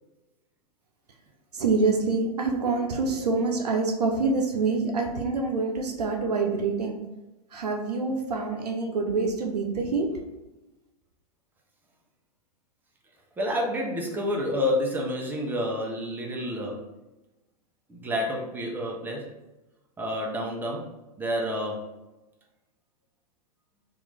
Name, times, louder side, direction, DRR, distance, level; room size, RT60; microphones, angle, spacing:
voice 1, 1.5-7.0 7.5-10.2, right 3 dB, 85° right, 3 dB, 0.6 m, -26 dB
voice 2, 13.4-16.8 17.9-19.2 20.0-20.9 21.2-21.9, left 1 dB, 10° right, -1 dB, 0.6 m, -29 dB
3.0 x 2.5 x 3.3 m, 1.0 s
hypercardioid pair, 110°, 20 cm